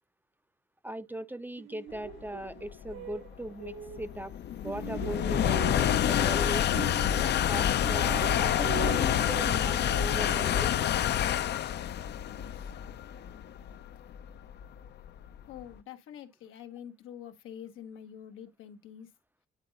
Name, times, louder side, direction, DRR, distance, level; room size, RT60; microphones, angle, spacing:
voice 1, 0.8-4.3 4.6-10.7, right 1 dB, 10° right, 0.5 m, -39 dB
sound 1, 1.6-4.3 4.6-7.6 7.8-11.4, right 9 dB, 85° right, 1.4 m, -42 dB
sound 2, 2.3-15.6, left 10 dB, 60° left, 0.5 m, -28 dB
voice 2, 15.5-19.1, left 9 dB, 85° left, 1.2 m, -46 dB
9.5 x 3.9 x 3.8 m
cardioid pair, 90°, 20 cm